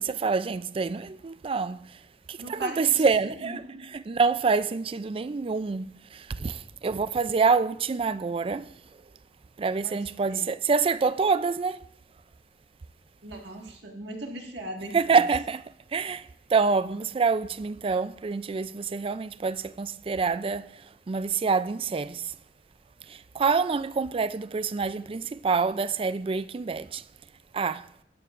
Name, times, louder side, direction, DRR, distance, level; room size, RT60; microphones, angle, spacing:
voice 1, 0.0-2.0 2.3-8.7 9.6-11.8 14.9-22.3 23.1-27.0 27.5-27.9, right 5 dB, 30° right, 0.4 m, -27 dB
voice 2, 2.4-3.0 3.4-3.9 9.8-9.9 10.3-10.4 13.2-15.2, right 1 dB, 75° right, 1.8 m, -39 dB
19.0 x 11.5 x 2.5 m
head